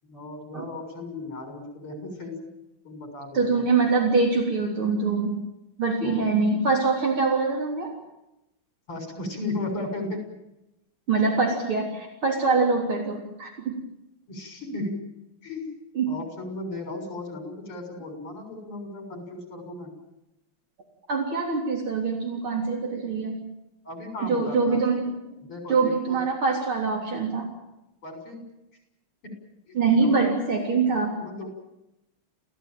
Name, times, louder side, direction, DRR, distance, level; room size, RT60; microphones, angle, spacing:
voice 1, 0.0-2.4 2.8-3.7 6.0-6.4 8.9-10.2 14.3-15.0 15.4-15.7 16.1-19.9 23.8-24.8 25.4-26.3 28.0-28.4 29.2-29.3 29.7-30.3 31.2-31.5, left 2 dB, 80° left, 4 dB, 7.7 m, -35 dB
voice 2, 3.3-5.4 5.8-7.9 11.1-13.7 16.0-16.1 21.1-23.3 24.3-25.1 25.7-27.5 29.7-31.1, right 4 dB, 70° right, 0 dB, 4.3 m, -24 dB
28.0 x 16.5 x 9.2 m, 0.91 s
omnidirectional pair, 2.4 m